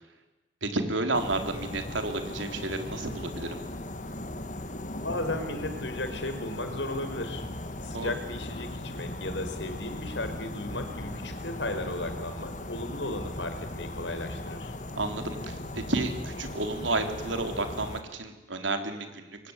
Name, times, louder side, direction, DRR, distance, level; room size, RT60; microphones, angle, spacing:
voice 1, 0.6-3.6 7.9-8.1 15.0-19.4, right 2 dB, 85° right, 6 dB, 3.9 m, -31 dB
sound 1, 1.1-18.0, left 1 dB, 40° left, 2.0 m, -38 dB
voice 2, 5.0-7.4 7.8-14.7, left 2 dB, 75° left, 8 dB, 4.5 m, -35 dB
25.5 x 23.5 x 9.9 m, 1.1 s
head